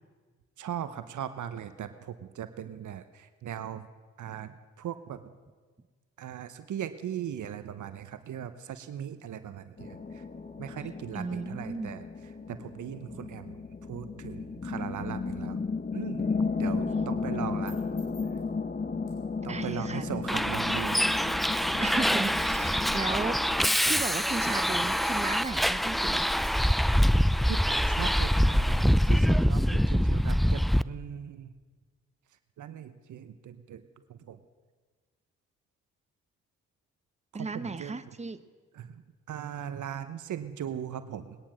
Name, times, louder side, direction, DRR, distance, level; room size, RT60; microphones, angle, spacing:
voice 1, 0.6-3.9 4.2-5.2 6.2-10.2 10.6-12.0 12.5-13.6 13.9-15.6 15.9-16.3 16.6-17.8 19.4-21.1 21.7-21.8 27.5-31.5 32.6-33.8 34.1-34.4 37.3-38.0 38.7-39.0 39.3-41.4, right 9 dB, 65° right, 11 dB, 0.9 m, -39 dB
sound 1, 9.8-23.8, left 4 dB, 30° left, 1.2 m, -34 dB
voice 2, 11.1-11.9 16.9-17.1 19.5-20.5 21.8-26.3 37.3-38.4, right 3 dB, 20° right, 11 dB, 1.1 m, -35 dB
sound 2, 17.3-26.5, left 3 dB, 70° left, 5.1 m, -62 dB
Bus, 20.3-30.8, equal, ahead, 0.4 m, -25 dB
20.5 x 10.0 x 6.4 m, 1.4 s
supercardioid pair, 45°, 32 cm